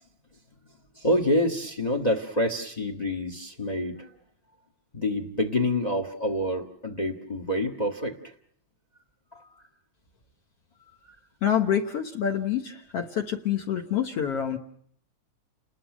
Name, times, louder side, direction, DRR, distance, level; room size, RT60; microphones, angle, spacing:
voice 1, 1.0-4.1 4.9-8.3 9.3-9.5, left 1 dB, 40° left, 6 dB, 0.5 m, -27 dB
voice 2, 11.4-14.6, left 9 dB, 60° left, 5 dB, 2.0 m, -27 dB
30.0 x 20.5 x 6.1 m, 0.65 s
omnidirectional pair, 3.7 m